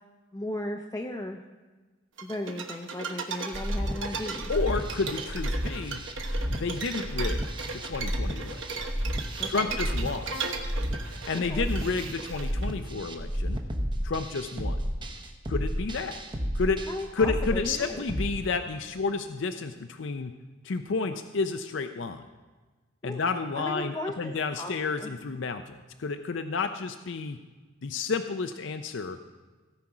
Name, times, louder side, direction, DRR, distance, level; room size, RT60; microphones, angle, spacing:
voice 1, 0.3-1.4 2.2-4.5 9.4-9.8 11.3-11.7 16.9-18.0 23.0-23.2 23.5-24.7 25.0-25.1, left 1 dB, 15° left, 1 dB, 0.6 m, -36 dB
sound 1, 2.2-12.7, right 5 dB, 70° right, 1.1 m, -37 dB
sound 2, 3.5-18.3, equal, 25° right, 0.9 m, -32 dB
voice 2, 4.5-6.0 6.5-7.4 7.7-8.8 9.5-10.5 11.3-13.6 14.0-14.8 15.5-16.2 16.5-16.8 17.1-20.3 20.6-22.2 23.0-27.4 27.8-29.2, left 4 dB, 65° left, 8 dB, 0.5 m, -31 dB
17.0 x 5.8 x 4.9 m, 1.3 s
head